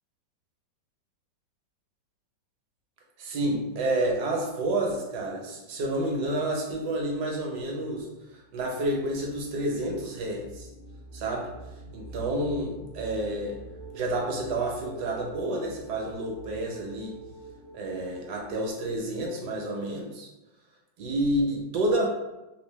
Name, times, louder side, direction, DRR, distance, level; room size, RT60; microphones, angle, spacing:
voice 1, 3.2-10.7 11.1-11.5 11.9-13.6 13.9-17.1 17.7-20.3 21.0-22.1, right 1 dB, 70° right, 0 dB, 1.2 m, -29 dB
sound 1, 8.2-18.5, right 2 dB, 30° left, 0.7 m, -46 dB
3.3 x 2.5 x 3.1 m, 1.0 s
omnidirectional pair, 2.0 m